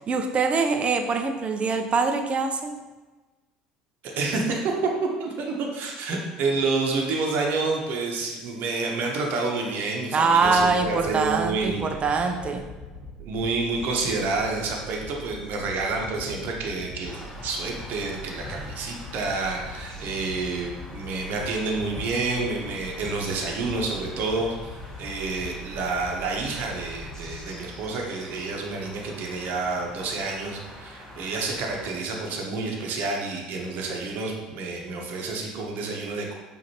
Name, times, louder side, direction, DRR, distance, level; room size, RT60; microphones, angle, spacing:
voice 1, 0.0-2.8 10.1-12.7, right 4 dB, 30° right, 6 dB, 0.5 m, -23 dB
voice 2, 4.2-4.7 5.2-12.3 13.2-24.5 25.0-36.3, right 3 dB, 55° right, 0 dB, 0.8 m, -29 dB
sound 1, 10.4-27.4, equal, 50° left, 1.1 m, -42 dB
sound 2, 17.0-31.9, left 1 dB, 15° left, 1.2 m, -44 dB
5.0 x 2.6 x 2.8 m, 1.2 s
hypercardioid pair, 75°, 4 cm